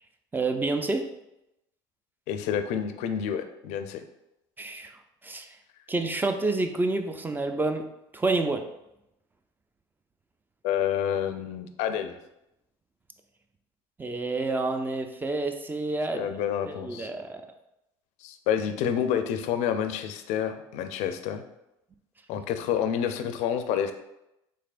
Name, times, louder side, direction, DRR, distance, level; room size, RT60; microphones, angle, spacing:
voice 1, 0.3-1.0 4.6-4.9 5.2-5.5 5.9-7.8 8.1-8.6 14.0-16.2 16.7-17.4, right 2 dB, 15° right, 6 dB, 0.4 m, -28 dB
voice 2, 2.3-4.0 10.6-12.2 16.1-17.1 18.2-21.4 22.3-23.9, left 9 dB, 65° left, 9 dB, 0.4 m, -28 dB
3.5 x 3.3 x 2.4 m, 0.87 s
hypercardioid pair, 75°, 13 cm